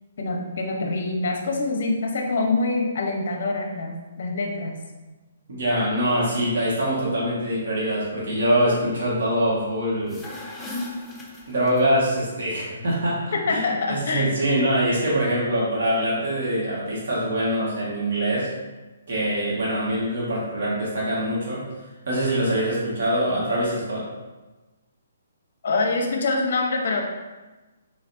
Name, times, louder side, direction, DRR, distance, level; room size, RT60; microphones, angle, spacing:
voice 1, 0.2-4.8 13.3-14.4 25.6-27.0, left 3 dB, 60° left, 1 dB, 0.8 m, -25 dB
voice 2, 5.5-10.2 11.5-13.6 13.9-18.5 19.1-21.6 22.0-24.1, right 1 dB, 65° right, -6 dB, 1.5 m, -24 dB
sound 1, 9.9-12.1, left 2 dB, 5° left, 0.4 m, -36 dB
3.8 x 3.2 x 2.6 m, 1.2 s
hypercardioid pair, 160°, 0 cm